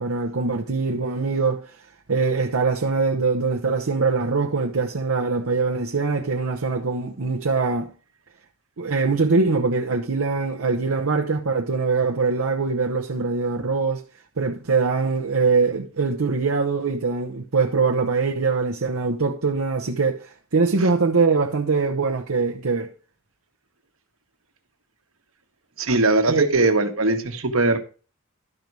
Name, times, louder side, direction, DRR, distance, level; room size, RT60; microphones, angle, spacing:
voice 1, 0.0-1.7 2.1-7.9 8.8-14.0 14.4-22.9 26.3-26.5, right 4 dB, 85° right, 0.8 m, -23 dB
voice 2, 25.8-27.8, right 2 dB, 70° right, 1.3 m, -20 dB
12.0 x 5.4 x 4.7 m
head